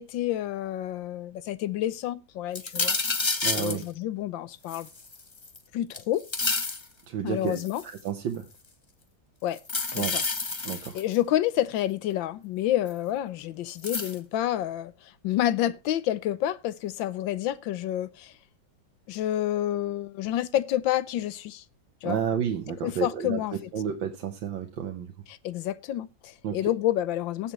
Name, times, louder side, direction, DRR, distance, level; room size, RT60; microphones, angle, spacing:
voice 1, 0.0-3.0 3.5-4.9 5.7-6.2 7.2-7.8 9.4-9.6 9.9-10.2 10.9-18.3 19.1-21.6 22.0-22.2 22.7-23.7 25.3-27.5, left 12 dB, 85° left, 1.5 m, -29 dB
sound 1, 2.5-3.8 4.7-5.6 5.9-6.8 7.5-8.0 9.6-11.2 12.9-13.0 13.8-14.2, left 3 dB, 30° left, 0.5 m, -29 dB
voice 2, 3.4-3.8 7.1-8.5 9.9-10.1 10.6-11.0 22.0-23.4 23.7-25.1 26.4-26.6, right 8 dB, 80° right, 1.8 m, -31 dB
19.0 x 7.1 x 3.1 m
omnidirectional pair, 2.0 m